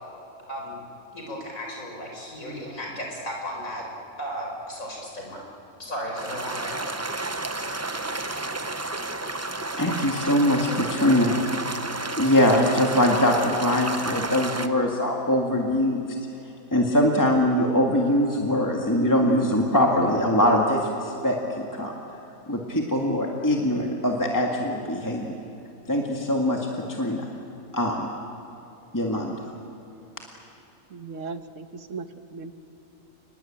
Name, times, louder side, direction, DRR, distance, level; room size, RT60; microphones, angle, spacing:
voice 1, 1.1-3.8 4.2-5.4 5.8-6.8, equal, 70° left, 0 dB, 5.7 m, -34 dB
sound 1, 6.2-14.7, right 2 dB, 20° right, 0.4 m, -31 dB
voice 2, 9.7-11.4 12.2-16.0 16.7-21.4 21.7-21.9 22.5-25.4 25.9-27.2 27.7-28.1 28.9-29.3, left 1 dB, 15° left, -1 dB, 2.0 m, -22 dB
voice 3, 30.9-32.5, right 4 dB, 65° right, 9 dB, 1.5 m, -37 dB
29.5 x 21.0 x 8.8 m, 2.7 s
omnidirectional pair, 1.5 m